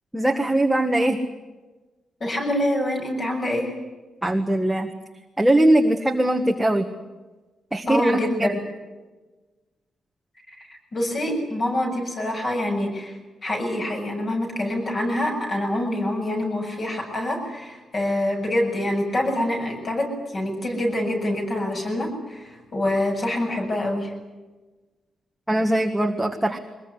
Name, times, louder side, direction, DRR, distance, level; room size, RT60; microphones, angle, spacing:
voice 1, 0.1-1.2 4.2-4.9 5.4-6.9 7.7-8.5 25.5-26.6, right 1 dB, 5° right, 3 dB, 1.6 m, -21 dB
voice 2, 2.2-3.7 7.9-8.6 10.5-24.1, left 1 dB, 35° left, 2 dB, 7.7 m, -26 dB
23.0 x 21.5 x 9.8 m, 1.2 s
wide cardioid pair, 155°, 0 cm